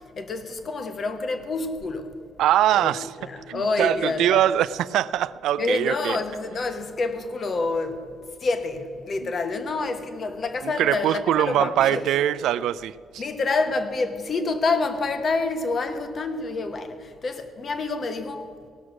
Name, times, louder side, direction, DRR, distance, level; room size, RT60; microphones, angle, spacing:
voice 1, 0.2-2.1 2.7-2.9 3.2-4.4 5.6-8.1 8.4-12.1 13.2-18.5, left 3 dB, 45° left, 1.1 m, -27 dB
voice 2, 2.4-3.1 3.5-6.2 10.8-13.2, right 12 dB, 85° right, 0.3 m, -22 dB
17.5 x 6.3 x 6.1 m
cardioid pair, 90°, 0 cm